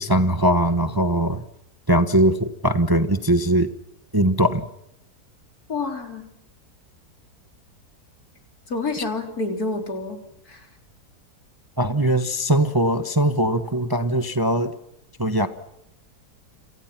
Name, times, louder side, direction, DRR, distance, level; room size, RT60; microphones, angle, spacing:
voice 1, 0.0-1.4 1.9-3.7 4.1-4.6 11.8-14.7 15.2-15.5, right 1 dB, 15° right, 9 dB, 1.0 m, -20 dB
voice 2, 5.7-6.2 8.7-10.2 10.5-10.7, left 3 dB, 65° left, 4 dB, 4.2 m, -28 dB
29.5 x 27.5 x 6.0 m, 0.79 s
omnidirectional pair, 1.7 m